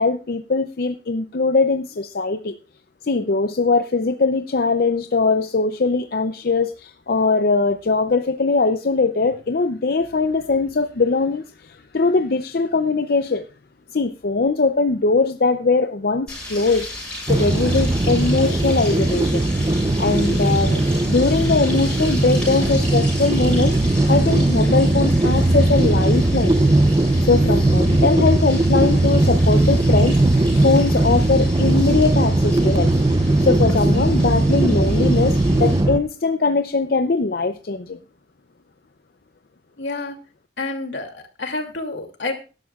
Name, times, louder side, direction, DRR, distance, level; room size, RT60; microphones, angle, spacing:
voice 1, 0.0-2.6 3.0-13.4 13.9-16.9 17.2-23.8 24.1-26.5 27.2-30.2 30.5-32.9 33.4-38.0, left 3 dB, 55° left, 8 dB, 0.6 m, -21 dB
sound 1, 16.3-35.8, left 1 dB, 5° left, 7.2 m, -35 dB
sound 2, 17.3-36.0, right 2 dB, 25° right, 0.6 m, -18 dB
voice 2, 39.8-40.2 40.6-42.3, left 2 dB, 80° left, 4 dB, 2.6 m, -29 dB
18.5 x 11.5 x 2.4 m, 0.33 s
head